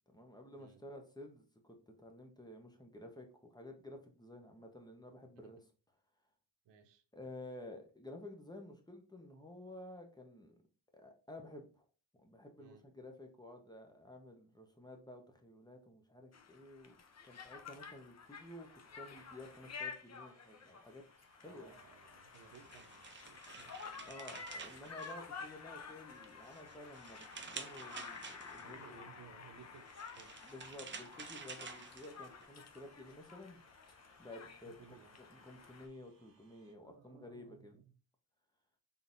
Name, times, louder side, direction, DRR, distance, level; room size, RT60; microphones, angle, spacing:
voice 1, 0.1-5.6 7.1-10.5 10.9-11.9 12.1-17.0 17.2-21.0 21.4-21.8 24.0-29.0 30.4-33.6 34.2-37.8, left 1 dB, 10° left, 4 dB, 0.9 m, -52 dB
voice 2, 6.6-7.0 12.6-12.8 21.5-24.4 28.6-30.3 34.8-35.2 36.8-38.0, right 7 dB, 70° right, 7 dB, 0.8 m, -60 dB
Conversation, 16.3-35.9, left 5 dB, 35° left, 0.8 m, -51 dB
sound 1, 18.3-36.7, right 4 dB, 50° right, 1.3 m, -73 dB
sound 2, 22.3-25.7 26.1-28.8 29.7-32.5, right 5 dB, 25° right, 0.6 m, -50 dB
3.9 x 3.7 x 2.6 m, 0.37 s
cardioid pair, 85°, 44 cm